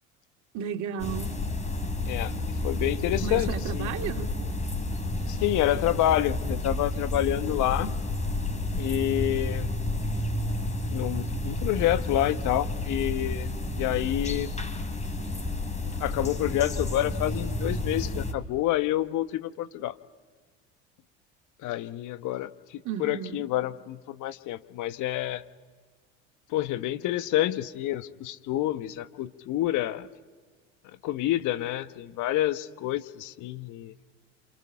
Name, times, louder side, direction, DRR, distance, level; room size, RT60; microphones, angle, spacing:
voice 1, 0.5-1.3 3.2-4.3 22.8-23.4, right 8 dB, 50° right, 3 dB, 2.8 m, -33 dB
sound 1, 1.0-18.3, left 2 dB, 20° left, 3.4 m, -31 dB
voice 2, 2.6-3.9 5.3-7.9 8.8-9.8 10.9-14.5 16.0-19.9 21.6-25.4 26.5-30.1 31.0-33.9, left 14 dB, 55° left, 12 dB, 1.2 m, -28 dB
28.5 x 28.0 x 5.8 m, 1.5 s
hypercardioid pair, 75°, 36 cm